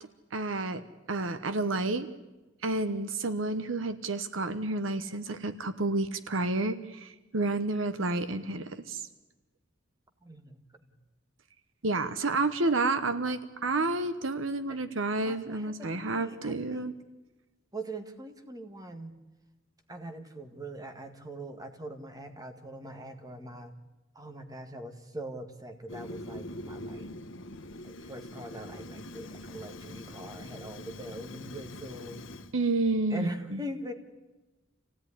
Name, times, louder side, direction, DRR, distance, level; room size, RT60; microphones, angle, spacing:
voice 1, 0.3-0.8 1.1-2.1 2.6-9.1 11.8-16.9 32.5-33.6, right 2 dB, 70° right, 12 dB, 1.1 m, -30 dB
voice 2, 10.2-10.9 14.7-14.8 15.2-16.9 17.7-19.1 19.9-23.8 24.1-27.1 27.8-32.2 33.1-33.9, right 1 dB, 20° right, 6 dB, 1.9 m, -42 dB
Fire, 25.9-32.5, left 1 dB, 70° left, 1.3 m, -43 dB
26.5 x 16.5 x 10.0 m, 1.1 s
head